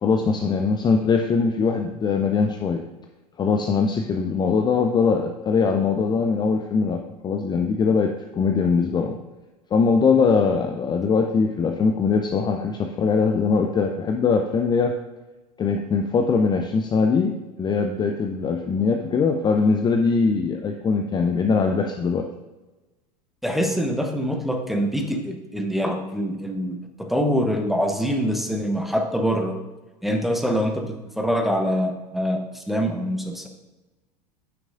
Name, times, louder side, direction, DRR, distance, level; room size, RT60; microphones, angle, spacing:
voice 1, 0.0-2.8 3.4-9.2 9.7-14.9 15.6-22.3, left 5 dB, 20° left, 4 dB, 0.5 m, -21 dB
voice 2, 23.4-29.6 30.0-33.5, equal, ahead, 3 dB, 0.9 m, -24 dB
9.3 x 6.1 x 2.5 m, 1.1 s
figure-of-eight pair, 80°, 21 cm